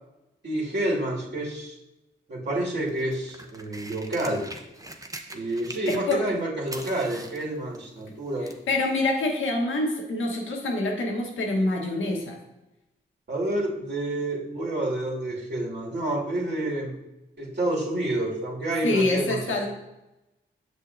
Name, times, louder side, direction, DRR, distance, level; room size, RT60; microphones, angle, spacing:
voice 1, 0.4-1.8 2.3-4.5 5.3-8.5 13.3-17.0 17.4-19.7, right 1 dB, 60° right, -4 dB, 2.4 m, -29 dB
sound 1, 2.8-6.4 6.6-8.7 9.5-9.6, right 1 dB, 15° right, 0.9 m, -42 dB
voice 2, 5.9-6.2 8.7-12.4 18.8-19.7, left 2 dB, 85° left, 1 dB, 1.4 m, -26 dB
7.5 x 6.3 x 2.7 m, 0.94 s
cardioid pair, 45°, 20 cm